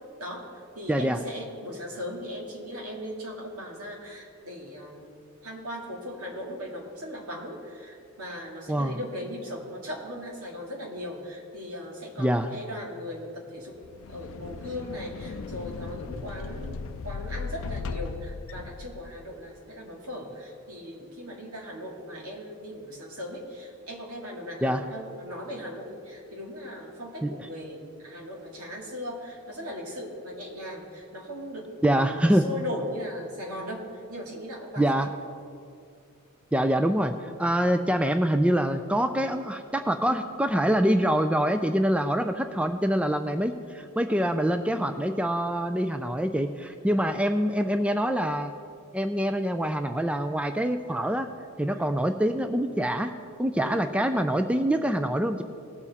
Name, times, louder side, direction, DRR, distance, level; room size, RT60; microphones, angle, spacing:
voice 1, 0.2-5.1 5.4-13.8 14.1-35.0 46.9-47.1 51.7-51.9 53.6-53.8, left 1 dB, 85° right, -1 dB, 2.3 m, -38 dB
voice 2, 0.9-1.2 8.7-9.0 12.2-12.5 24.6-24.8 27.2-27.3 31.8-32.4 34.8-35.1 36.5-48.5 48.9-51.3 51.6-53.1 53.4-55.4, equal, 5° right, 8 dB, 0.3 m, -25 dB
sound 1, 13.8-19.4, left 4 dB, 60° left, 0.4 m, -37 dB
19.0 x 7.0 x 4.2 m, 2.3 s
head